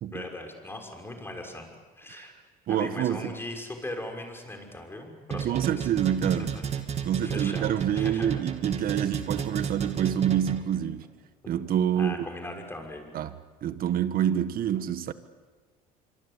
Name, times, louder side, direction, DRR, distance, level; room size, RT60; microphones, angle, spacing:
voice 1, 0.1-1.7 2.0-2.3 2.7-5.9 6.2-6.4 7.2-8.4 11.9-13.1, left 1 dB, 10° left, 6.1 m, -39 dB
voice 2, 2.7-3.4 5.3-6.6 7.0-11.1 11.5-12.2 13.1-13.3 13.6-15.1, right 10 dB, 55° right, 1.5 m, -27 dB
sound 1, 5.3-10.8, right 7 dB, 35° right, 2.7 m, -32 dB
26.0 x 24.5 x 8.4 m
supercardioid pair, 95°, 18 cm